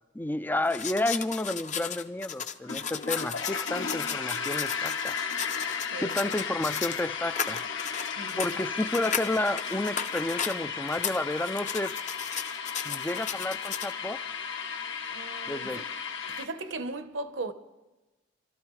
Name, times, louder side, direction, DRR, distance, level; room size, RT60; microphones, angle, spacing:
voice 1, 0.1-5.3 5.7-7.9 8.4-11.9 12.8-14.2 15.5-15.8, left 1 dB, 10° left, 0.4 m, -31 dB
sound 1, 0.7-7.1 7.3-10.6 10.9-13.9, left 7 dB, 40° left, 0.7 m, -35 dB
sound 2, 2.6-16.4, left 6 dB, 70° left, 1.3 m, -35 dB
voice 2, 5.9-6.4 8.2-8.6 15.1-15.9 16.3-17.5, right 2 dB, 65° right, 1.0 m, -38 dB
26.5 x 13.0 x 3.2 m
head